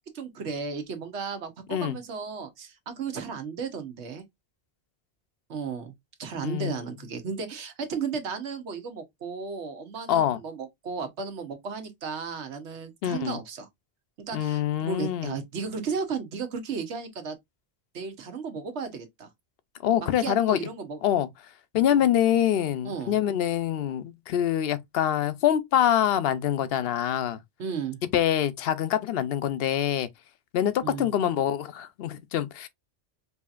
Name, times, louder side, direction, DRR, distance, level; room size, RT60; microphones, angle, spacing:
voice 1, 0.1-4.2 5.5-5.9 6.2-13.7 14.3-17.4 17.9-19.3 20.0-21.0 21.9-22.0 22.8-23.2 27.6-28.0 30.8-31.1, right 5 dB, 85° right, 1.2 m, -34 dB
voice 2, 6.4-6.7 10.1-10.4 13.0-13.4 14.3-15.4 19.8-20.6 21.0-21.3 21.7-27.4 28.1-30.1 30.5-32.7, left 10 dB, 65° left, 0.8 m, -25 dB
4.9 x 2.8 x 2.4 m
omnidirectional pair, 1.1 m